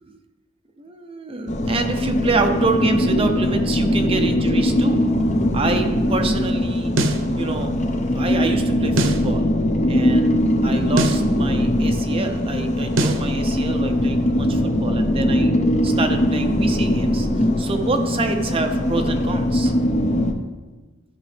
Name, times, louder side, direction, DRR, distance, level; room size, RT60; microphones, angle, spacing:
voice 1, 0.8-5.1 5.5-7.0 7.4-7.7 8.0-9.5 9.9-15.5 15.8-19.7, right 3 dB, 30° right, 5 dB, 0.7 m, -27 dB
sound 1, 1.5-20.3, left 1 dB, 40° left, 0.7 m, -21 dB
sound 2, 7.0-7.3 9.0-9.3 11.0-11.3 13.0-13.3, right 2 dB, 90° right, 0.7 m, -21 dB
12.0 x 5.9 x 3.4 m, 1.3 s
head